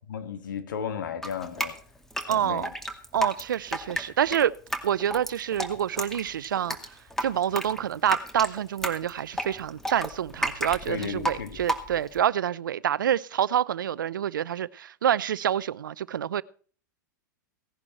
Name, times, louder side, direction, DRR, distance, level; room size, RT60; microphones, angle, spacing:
voice 1, 0.1-1.8 2.2-2.7 10.9-11.6, left 7 dB, 70° left, 2.5 m, -34 dB
Drip, 1.2-12.2, right 1 dB, 5° left, 2.3 m, -32 dB
voice 2, 2.3-2.7 3.1-4.5 4.8-6.8 7.2-16.4, right 10 dB, 80° right, 0.7 m, -27 dB
17.5 x 11.0 x 4.4 m
hypercardioid pair, 105°, 11 cm